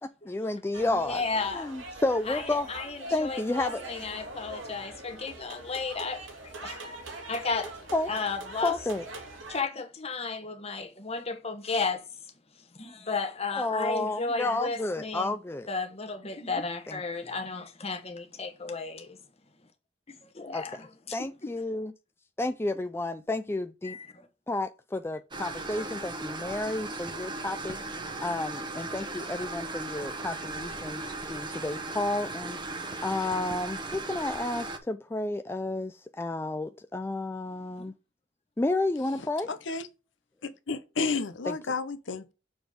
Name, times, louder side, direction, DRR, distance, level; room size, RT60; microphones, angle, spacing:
voice 1, 0.0-1.2 1.5-2.7 3.1-3.8 7.9-8.1 8.6-9.1 13.5-15.7 16.9-17.0 20.5-20.8 21.1-21.9 22.4-24.0 24.5-32.6 33.0-37.9 38.6-39.5 41.5-41.6, left 2 dB, 10° left, 0.3 m, -31 dB
sound 1, 0.7-9.6, right 2 dB, 80° right, 2.3 m, -43 dB
voice 2, 0.8-1.7 2.3-6.8 7.3-7.7 8.1-8.7 9.5-12.0 12.8-15.3 15.7-19.2 20.2-20.9 21.4-21.5 23.8-24.3 37.8-37.9, left 4 dB, 30° left, 1.2 m, -34 dB
sound 2, 25.3-34.8, right 2 dB, 25° right, 0.9 m, -37 dB
voice 3, 39.2-39.9 40.4-42.3, left 4 dB, 70° left, 0.7 m, -32 dB
6.8 x 4.1 x 5.0 m
head